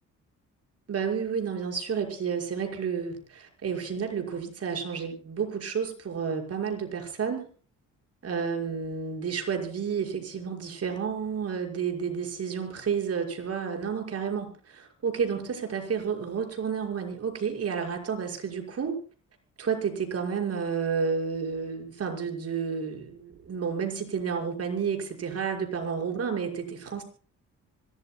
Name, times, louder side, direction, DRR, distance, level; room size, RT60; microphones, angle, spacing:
voice 1, 0.9-7.5 8.2-19.0 19.6-27.0, right 6 dB, 55° right, 3 dB, 6.0 m, -31 dB
25.5 x 17.5 x 2.3 m, 0.40 s
cardioid pair, 90°, 30 cm